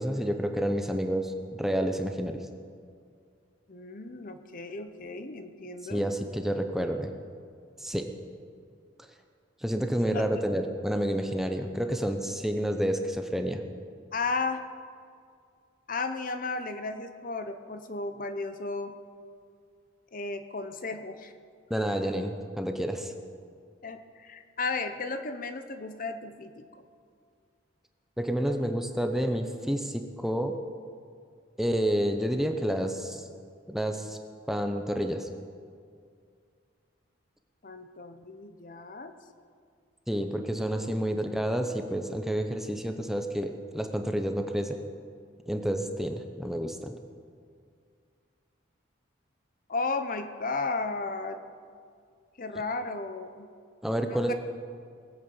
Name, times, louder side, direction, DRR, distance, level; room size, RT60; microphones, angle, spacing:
voice 1, 0.0-2.4 5.9-7.1 7.8-8.1 9.6-13.6 21.7-23.1 28.2-30.6 31.6-33.3 33.7-34.2 34.5-35.3 40.1-44.8 45.5-46.9 53.8-54.3, equal, ahead, 5 dB, 0.7 m, -29 dB
voice 2, 3.7-6.0 10.0-10.4 14.1-14.6 15.9-19.0 20.1-21.3 23.8-26.6 37.6-39.1 40.8-40.9 49.7-51.4 52.4-53.5 54.1-54.3, left 3 dB, 45° left, 9 dB, 0.8 m, -34 dB
19.5 x 8.5 x 7.1 m, 2.2 s
head